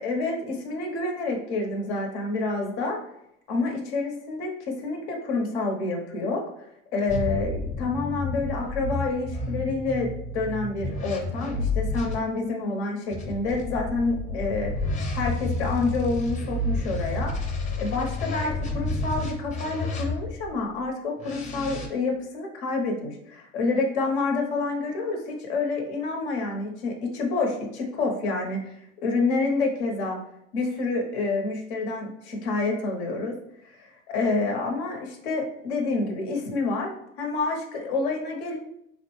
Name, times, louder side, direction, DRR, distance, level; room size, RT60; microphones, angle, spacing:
voice 1, 0.0-3.0 3.5-6.4 6.9-10.1 10.3-14.7 15.1-17.3 17.8-28.7 29.0-30.2 30.5-33.3 33.7-38.6, left 3 dB, 90° left, 1 dB, 0.9 m, -28 dB
sound 1, 7.1-12.2 13.1-20.5 21.2-21.9, left 2 dB, 25° left, 0.6 m, -30 dB
3.8 x 2.1 x 3.1 m, 0.76 s
supercardioid pair, 115°, 32 cm